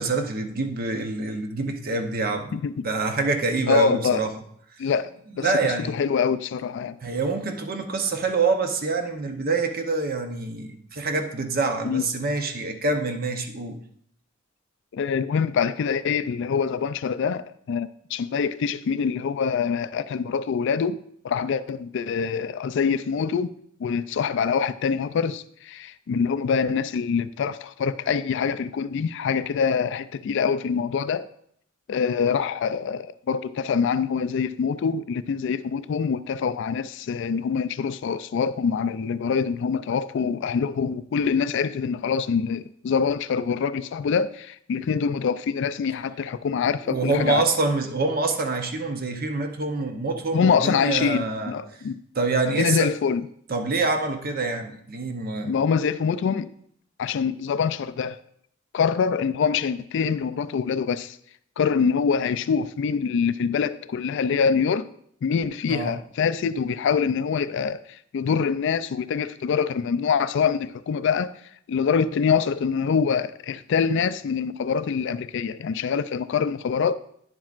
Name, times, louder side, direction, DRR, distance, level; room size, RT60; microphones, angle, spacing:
voice 1, 0.0-2.6 2.8-4.3 5.4-6.0 7.0-13.8 46.9-51.5 52.1-52.9 53.5-55.6 65.7-65.9, right 3 dB, 45° right, 6 dB, 0.8 m, -26 dB
voice 2, 2.5-2.9 3.7-4.3 4.8-5.1 5.4-7.0 11.9-12.0 14.9-21.0 21.2-23.5 23.8-31.3 31.9-47.5 50.3-52.0 52.6-53.2 55.4-56.5 57.0-58.2 58.7-61.2 61.6-64.9 65.2-71.3 71.7-76.9, left 6 dB, 60° left, 14 dB, 0.3 m, -25 dB
10.0 x 7.3 x 2.5 m, 0.66 s
head